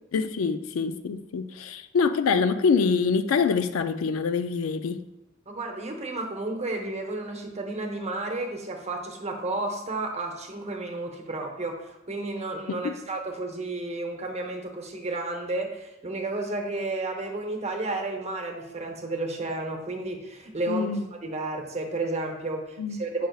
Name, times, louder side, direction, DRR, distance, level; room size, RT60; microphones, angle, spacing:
voice 1, 0.1-5.0 12.7-13.0 20.7-21.0 22.8-23.0, left 5 dB, 75° left, 9 dB, 0.4 m, -25 dB
voice 2, 5.5-20.9 21.2-23.3, right 2 dB, 35° right, 3 dB, 0.9 m, -32 dB
7.8 x 5.2 x 2.3 m, 0.94 s
head